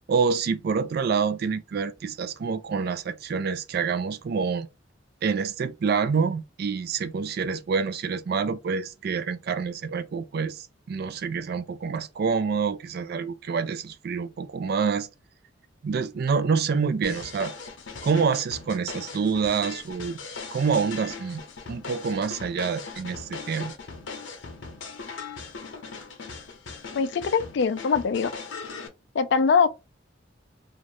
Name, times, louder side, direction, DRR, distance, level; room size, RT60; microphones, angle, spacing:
voice 1, 0.1-4.7 5.2-15.1 15.8-17.5 18.0-20.2 20.5-21.4 21.7-23.7, right 5 dB, 55° right, 0.3 m, -27 dB
sound 1, 17.0-28.9, left 4 dB, 80° left, 0.7 m, -39 dB
voice 2, 27.0-28.3 29.1-29.7, left 5 dB, 65° left, 0.3 m, -22 dB
2.6 x 2.5 x 3.1 m
head